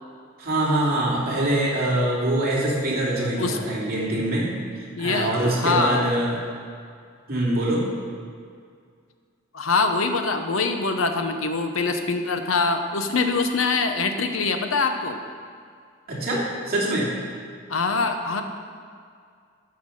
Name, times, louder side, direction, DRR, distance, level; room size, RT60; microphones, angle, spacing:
voice 1, 0.4-4.5 4.8-6.3 7.3-7.8 16.1-17.0, right 1 dB, 50° right, -5 dB, 2.9 m, -24 dB
voice 2, 5.0-6.1 9.5-15.2 17.7-18.4, left 4 dB, 90° left, 6 dB, 0.9 m, -24 dB
13.0 x 5.8 x 6.5 m, 2.2 s
head